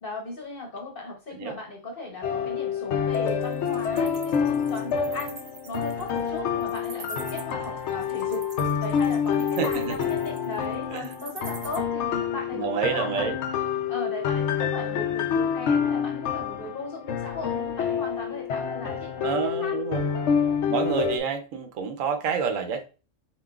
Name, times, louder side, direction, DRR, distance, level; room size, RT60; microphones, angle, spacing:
voice 1, 0.0-5.4 5.6-8.4 8.8-13.4 13.9-19.8, left 3 dB, 45° left, 1.1 m, -37 dB
sound 1, 2.2-21.2, left 7 dB, 70° left, 0.9 m, -27 dB
Wild animals, 3.1-11.8, right 5 dB, 45° right, 0.7 m, -44 dB
voice 2, 9.6-9.9 10.9-11.0 12.5-13.4 19.2-20.0 20.7-22.8, right 6 dB, 90° right, 1.1 m, -28 dB
7.1 x 2.8 x 2.3 m
omnidirectional pair, 1.3 m